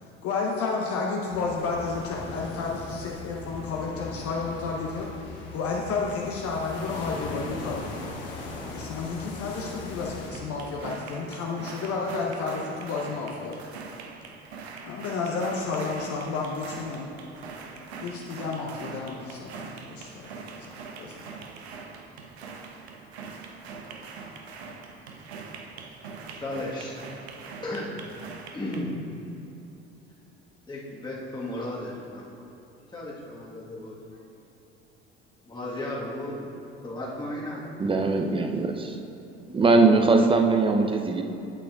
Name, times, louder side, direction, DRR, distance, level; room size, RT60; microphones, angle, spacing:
voice 1, 0.0-5.1 5.5-7.9 8.7-13.6 14.8-17.1 18.0-20.3 20.5-21.2, left 4 dB, 45° left, -1 dB, 0.8 m, -31 dB
sound 1, 1.3-10.3, left 3 dB, 65° left, 1.2 m, -39 dB
sound 2, 10.3-28.8, right 5 dB, 75° right, 0.6 m, -42 dB
voice 2, 26.3-27.0 27.6-28.0 28.5-29.0 30.7-32.5 32.9-34.0 35.5-36.4 36.8-37.7, left 1 dB, 15° left, -6 dB, 1.4 m, -34 dB
voice 3, 37.8-39.0 39.5-41.2, right 3 dB, 15° right, 5 dB, 0.5 m, -21 dB
8.7 x 8.3 x 2.4 m, 2.8 s
figure-of-eight pair, 60°, 33 cm